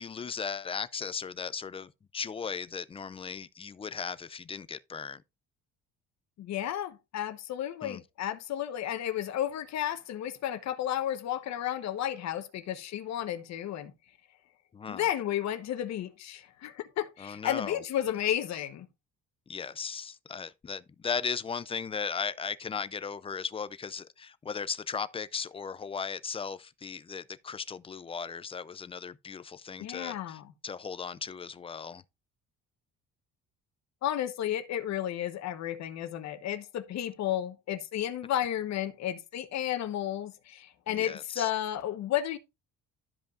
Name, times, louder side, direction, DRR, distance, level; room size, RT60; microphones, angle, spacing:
voice 1, 0.0-5.2 7.8-8.0 14.7-15.1 17.2-17.8 19.5-32.0 40.9-41.5, left 6 dB, 20° left, 0.4 m, -37 dB
voice 2, 6.4-13.9 14.9-18.9 29.8-30.4 34.0-42.4, left 11 dB, 60° left, 1.1 m, -32 dB
12.5 x 5.2 x 2.5 m
cardioid pair, 135°, 30 cm